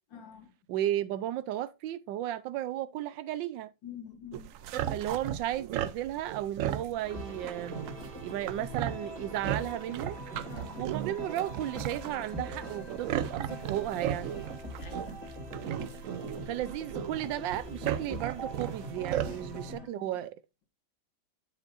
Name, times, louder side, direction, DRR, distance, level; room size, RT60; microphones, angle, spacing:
voice 1, 0.1-0.5 3.8-4.5 10.5-10.9 14.8-15.2 19.3-20.1, left 8 dB, 90° left, 2.4 m, -48 dB
voice 2, 0.7-3.7 4.9-7.8 8.2-10.2 10.8-14.3 16.5-20.3, right 12 dB, 90° right, 1.3 m, -34 dB
sound 1, 4.3-19.7, right 11 dB, 70° right, 0.7 m, -37 dB
sound 2, 7.0-19.9, equal, 20° right, 2.7 m, -42 dB
8.8 x 7.4 x 2.5 m
omnidirectional pair, 2.0 m